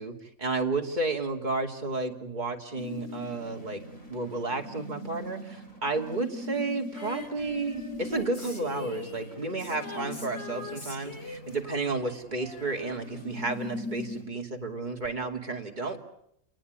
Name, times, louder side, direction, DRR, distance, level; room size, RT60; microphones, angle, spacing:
voice 1, 0.0-3.8 4.1-16.0, right 3 dB, 35° right, 3 dB, 2.9 m, -32 dB
sound 1, 2.8-14.2, left 1 dB, 80° left, 8.1 m, -41 dB
Female singing, 6.9-13.9 15.0-15.1, left 4 dB, 50° left, 3.9 m, -43 dB
28.5 x 19.5 x 9.6 m, 0.77 s
omnidirectional pair, 1.4 m